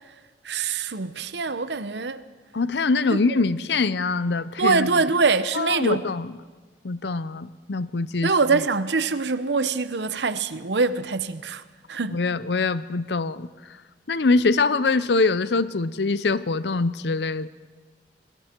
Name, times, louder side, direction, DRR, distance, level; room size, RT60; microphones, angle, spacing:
voice 1, 0.4-2.2 3.1-3.2 4.6-6.1 8.2-11.6 11.9-12.2, right 4 dB, 75° right, 0.9 m, -24 dB
voice 2, 2.5-5.0 5.5-6.3 6.8-8.3 12.1-13.5 14.1-17.5, left 3 dB, 70° left, 0.7 m, -23 dB
27.0 x 21.5 x 4.6 m
head